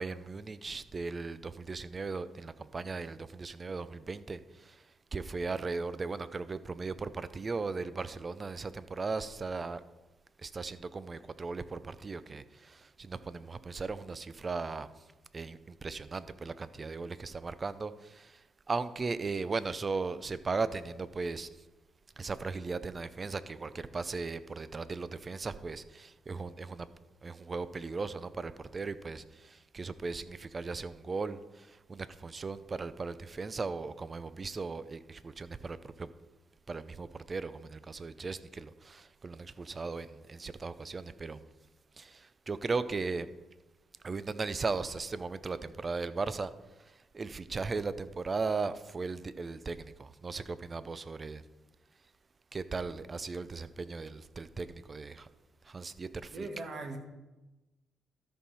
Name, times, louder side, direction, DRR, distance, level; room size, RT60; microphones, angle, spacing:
voice 1, 0.0-4.8 5.1-9.8 10.4-14.9 15.3-18.4 18.7-21.5 22.2-26.9 27.2-36.1 36.7-41.4 42.0-43.3 44.0-46.5 47.1-51.4 52.5-55.3 55.7-56.5, right 4 dB, 30° right, 14 dB, 0.5 m, -37 dB
voice 2, 56.3-57.0, right 2 dB, 50° right, 4 dB, 1.7 m, -39 dB
13.0 x 5.6 x 4.2 m, 1.1 s
cardioid pair, 90°, 0 cm